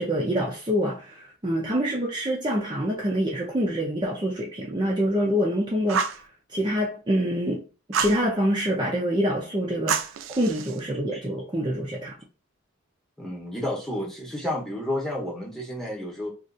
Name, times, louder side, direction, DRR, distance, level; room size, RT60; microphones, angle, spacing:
voice 1, 0.0-6.2 6.5-7.6 7.9-10.1 10.4-12.2, equal, 20° right, 0.6 m, -26 dB
Fire, 5.9-6.2 7.9-8.2 9.9-10.8, right 6 dB, 70° right, 0.4 m, -27 dB
voice 2, 13.2-16.3, left 1 dB, ahead, 1.0 m, -31 dB
4.2 x 2.5 x 2.5 m
head